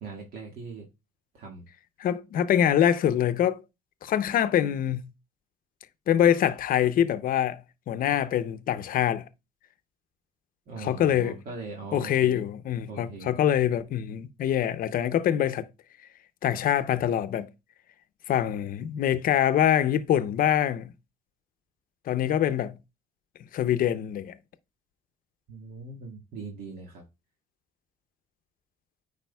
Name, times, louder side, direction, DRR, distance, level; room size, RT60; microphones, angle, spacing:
voice 1, 0.0-0.9 1.3-1.6 10.7-12.4 12.9-13.4 25.5-27.0, right 4 dB, 60° right, 1.8 m, -40 dB
voice 2, 2.0-3.6 4.0-5.0 6.1-9.3 10.8-11.4 11.9-15.7 16.4-17.5 18.3-20.9 22.1-22.8 23.5-24.4, left 10 dB, 55° left, 0.6 m, -24 dB
9.1 x 4.9 x 2.3 m
cardioid pair, 110°, 17 cm